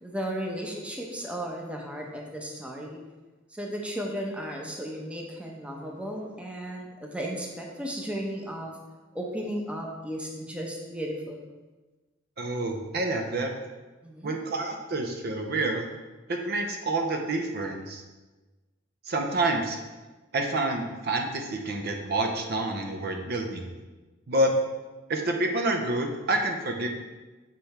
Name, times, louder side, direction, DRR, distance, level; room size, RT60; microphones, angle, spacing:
voice 1, 0.0-3.0 3.5-8.7 9.1-11.4 14.0-14.3, equal, 5° right, 0 dB, 0.7 m, -35 dB
voice 2, 12.4-13.5 14.2-15.9 16.3-18.0 19.1-19.8 20.3-23.7 24.3-24.5 25.1-26.9, right 2 dB, 55° right, 3 dB, 0.6 m, -28 dB
7.6 x 3.4 x 4.3 m, 1.2 s
head